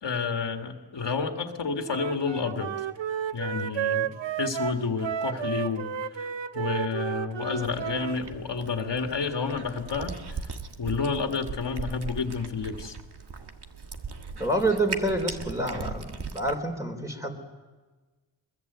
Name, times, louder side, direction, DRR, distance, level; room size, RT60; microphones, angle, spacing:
voice 1, 0.0-2.7 3.3-4.1 4.4-10.4 10.8-13.0, left 5 dB, 70° left, 4 dB, 2.0 m, -30 dB
Wind instrument woodwind instrument, 1.9-8.2, right 9 dB, 90° right, 0.8 m, -32 dB
Cat, 7.6-16.6, right 4 dB, 65° right, 1.7 m, -39 dB
voice 2, 14.4-17.4, right 1 dB, 5° right, 3 dB, 3.9 m, -28 dB
22.5 x 22.0 x 8.1 m, 1.3 s
wide cardioid pair, 75°, 43 cm